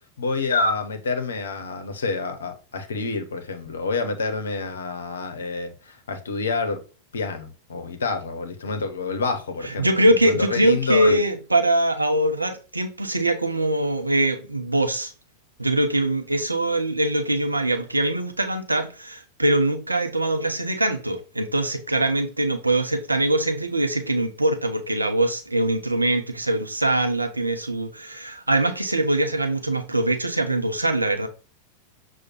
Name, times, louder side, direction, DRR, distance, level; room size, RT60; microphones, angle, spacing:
voice 1, 0.2-6.8 7.1-11.2, left 3 dB, 70° left, 0.6 m, -28 dB
voice 2, 9.6-15.1 15.6-31.3, right 1 dB, 85° right, 0.5 m, -23 dB
6.2 x 2.1 x 2.9 m
figure-of-eight pair, 90°, 0 cm